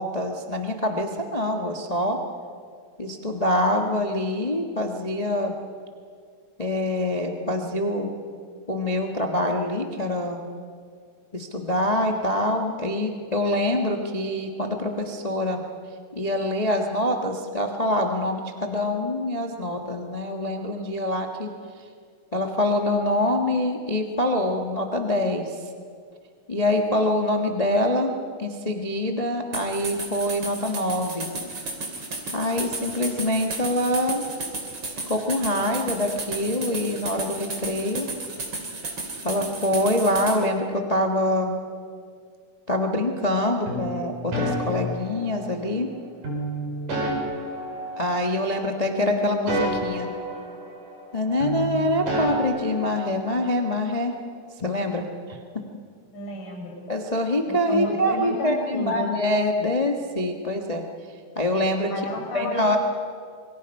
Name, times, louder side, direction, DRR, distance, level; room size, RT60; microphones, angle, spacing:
voice 1, 0.0-2.2 3.0-5.6 6.6-8.1 8.7-10.5 11.3-15.6 16.1-21.5 22.3-25.5 26.5-31.3 32.3-34.2 35.1-38.1 39.2-41.5 42.7-45.9 48.0-50.1 51.1-54.1 54.6-55.4 56.9-60.8 61.3-61.9 62.3-62.8, left 1 dB, 70° left, 2 dB, 0.3 m, -25 dB
sound 1, 29.5-40.4, right 3 dB, 40° right, 3.5 m, -33 dB
sound 2, 43.7-45.7 46.2-48.6 48.8-51.1 51.4-53.5, right 1 dB, 75° right, 6.3 m, -30 dB
voice 2, 56.1-56.8 57.5-59.1 61.9-62.8, left 1 dB, 85° left, 0 dB, 7.4 m, -31 dB
27.5 x 23.5 x 5.5 m, 2.1 s
omnidirectional pair, 3.7 m